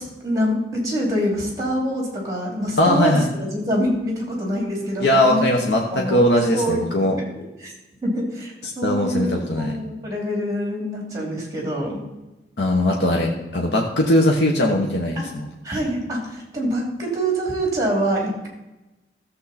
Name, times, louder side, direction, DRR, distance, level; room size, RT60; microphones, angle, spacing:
voice 1, 0.0-6.2 6.5-7.0 7.3-7.7 8.0-12.0 15.1-15.3 15.6-18.5, equal, 20° right, -1 dB, 3.0 m, -25 dB
voice 2, 2.8-3.3 5.0-7.2 8.8-9.7 12.6-15.5, left 1 dB, 80° left, 0 dB, 1.3 m, -19 dB
14.0 x 7.4 x 4.2 m, 1.0 s
head